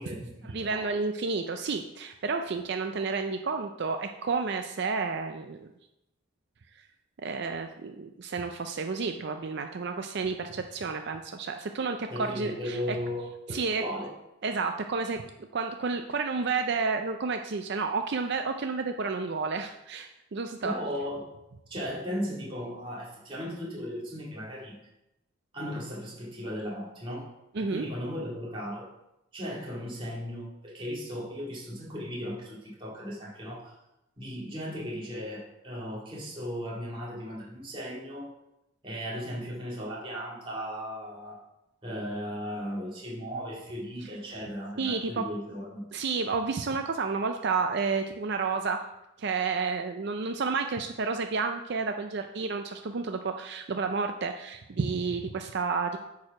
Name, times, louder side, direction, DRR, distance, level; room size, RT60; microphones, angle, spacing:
voice 1, 0.0-0.9 12.1-14.1 20.6-21.3 21.7-24.8 25.5-27.3 27.6-28.9 29.3-33.7 34.2-38.3 38.8-41.4 41.8-45.8, equal, 25° right, -5 dB, 2.2 m, -36 dB
voice 2, 0.5-5.7 6.8-6.9 7.2-13.0 13.5-13.8 14.4-15.2 15.5-20.7 27.5-27.9 44.8-45.2 45.9-48.8 49.2-56.0, right 4 dB, 50° right, 6 dB, 0.4 m, -31 dB
8.7 x 4.8 x 5.8 m, 0.89 s
head